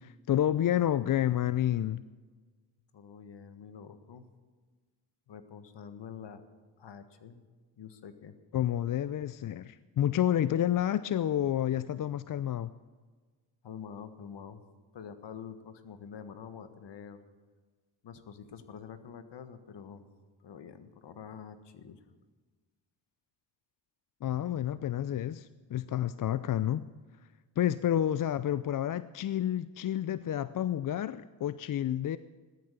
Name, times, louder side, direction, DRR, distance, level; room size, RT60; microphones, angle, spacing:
voice 1, 0.0-2.0 8.5-12.7 24.2-26.9 27.6-32.2, left 11 dB, 45° left, 15 dB, 0.5 m, -29 dB
voice 2, 2.9-4.3 5.3-6.4 6.8-7.4 7.8-8.3 13.6-14.6 14.9-17.2 18.0-20.0 20.4-22.0, left 7 dB, 60° left, 10 dB, 1.6 m, -46 dB
15.5 x 13.0 x 6.8 m, 1.4 s
supercardioid pair, 60°, 47 cm